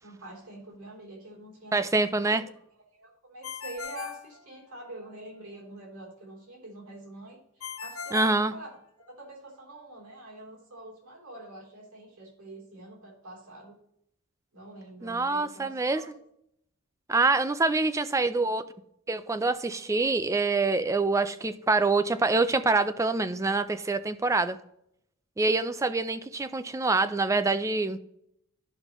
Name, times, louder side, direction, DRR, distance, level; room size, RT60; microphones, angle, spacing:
voice 1, 0.0-2.5 2.9-8.7 9.1-13.8 14.5-16.1 18.1-18.3, right 2 dB, 70° right, -2 dB, 3.4 m, -46 dB
voice 2, 1.7-2.4 8.1-8.5 15.0-16.0 17.1-18.6 19.1-24.6 25.4-28.0, right 3 dB, 15° right, 11 dB, 0.3 m, -25 dB
Ringtone, 3.4-5.1 7.6-9.2, left 7 dB, 65° left, 0.8 m, -40 dB
11.5 x 5.2 x 3.0 m, 0.75 s
head